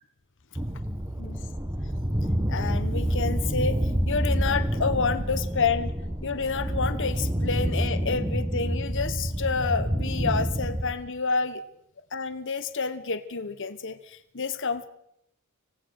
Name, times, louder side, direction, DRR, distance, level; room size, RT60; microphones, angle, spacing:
sound 1, 0.6-10.9, equal, 15° right, 1.3 m, -28 dB
voice 1, 2.5-3.8 4.1-5.9 6.2-11.6 12.1-14.9, left 5 dB, 60° left, 11 dB, 1.3 m, -29 dB
26.0 x 18.0 x 6.4 m, 0.79 s
head